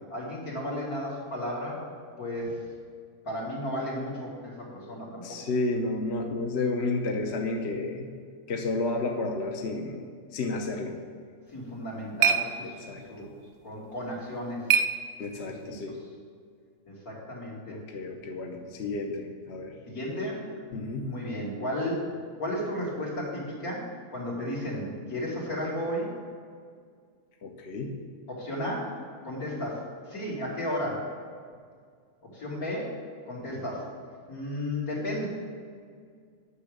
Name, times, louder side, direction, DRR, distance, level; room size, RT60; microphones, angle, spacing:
voice 1, 0.1-1.8 2.2-2.6 3.2-5.4 11.5-14.6 15.5-15.8 16.9-17.8 19.9-20.4 21.0-22.0 22.4-23.8 24.1-26.1 28.3-28.9 29.2-29.8 30.1-31.1 32.2-32.9 33.3-33.8 34.3-35.3, left 1 dB, 80° left, -6 dB, 3.3 m, -34 dB
voice 2, 5.2-8.1 8.5-11.0 12.8-13.3 15.2-16.0 17.7-19.8 20.7-21.1 27.4-27.9, left 3 dB, 50° left, 2 dB, 1.0 m, -31 dB
sound 1, 11.5-15.7, right 7 dB, 60° right, 0.7 m, -30 dB
9.9 x 6.1 x 6.7 m, 2.1 s
omnidirectional pair, 1.5 m